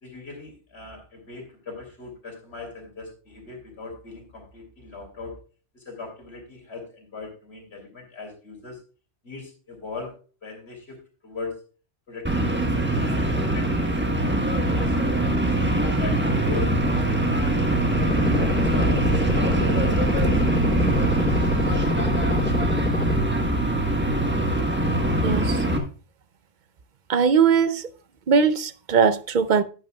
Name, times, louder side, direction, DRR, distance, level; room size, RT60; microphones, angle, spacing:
voice 1, 0.0-5.4 5.7-8.8 9.2-11.5 12.1-12.7 13.0-17.6 18.2-20.8, left 3 dB, 65° left, 3.4 m, -40 dB
sound 1, 12.2-25.8, right 1 dB, 10° right, 1.3 m, -23 dB
sound 2, 17.9-23.2, left 2 dB, 10° left, 0.7 m, -27 dB
voice 2, 25.2-25.6 27.1-27.8 28.3-29.6, right 6 dB, 50° right, 0.6 m, -20 dB
10.5 x 10.0 x 2.3 m
omnidirectional pair, 1.2 m